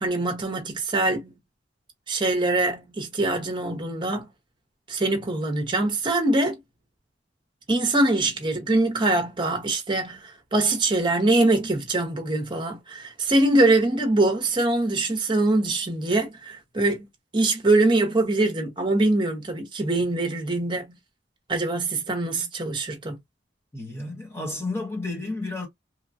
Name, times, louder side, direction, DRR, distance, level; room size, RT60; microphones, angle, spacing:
voice 1, 0.0-1.4 2.1-4.3 4.9-6.6 7.7-17.1 17.3-21.0 21.5-23.2, right 2 dB, 25° right, 0.9 m, -23 dB
voice 2, 23.7-25.7, left 2 dB, 15° left, 1.1 m, -31 dB
3.1 x 2.2 x 2.5 m
head